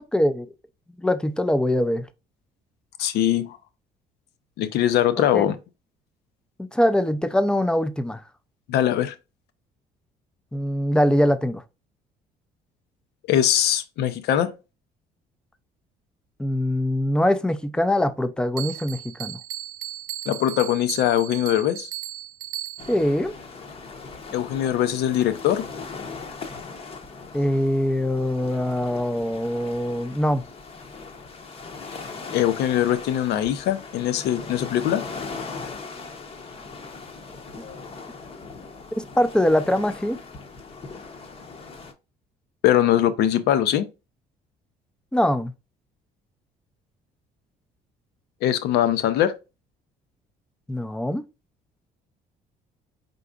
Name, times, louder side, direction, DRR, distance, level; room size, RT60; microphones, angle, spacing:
voice 1, 0.1-0.5 1.0-2.1 5.3-5.5 6.6-8.2 10.5-11.6 16.4-19.4 22.9-23.3 27.3-30.4 39.0-40.2 45.1-45.5 50.7-51.2, left 1 dB, 5° left, 0.4 m, -23 dB
voice 2, 3.0-3.6 4.6-5.6 8.7-9.2 13.3-14.5 20.3-21.9 24.3-25.6 32.3-35.1 42.6-43.9 48.4-49.3, left 11 dB, 80° left, 0.7 m, -22 dB
Bell, 18.6-23.1, right 14 dB, 65° right, 0.4 m, -36 dB
sound 1, 22.8-41.9, left 4 dB, 35° left, 0.8 m, -39 dB
4.7 x 3.8 x 2.3 m
cardioid pair, 110°, 17 cm